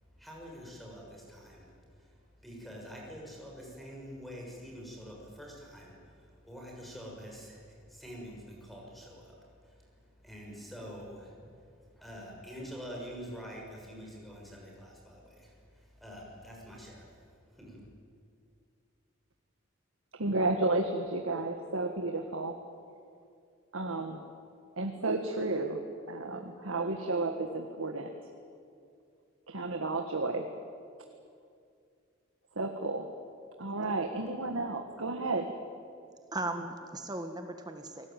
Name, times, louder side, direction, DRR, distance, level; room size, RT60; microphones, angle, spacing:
voice 1, 0.1-17.9, equal, ahead, -2 dB, 6.5 m, -47 dB
voice 2, 20.1-22.6 23.7-24.2 24.8-25.8 26.1-28.1 29.5-30.5 32.5-33.1 33.6-35.5, right 2 dB, 80° right, 4 dB, 1.7 m, -32 dB
voice 3, 36.3-38.1, right 2 dB, 20° right, 5 dB, 1.6 m, -37 dB
29.0 x 19.0 x 9.2 m, 2.3 s
head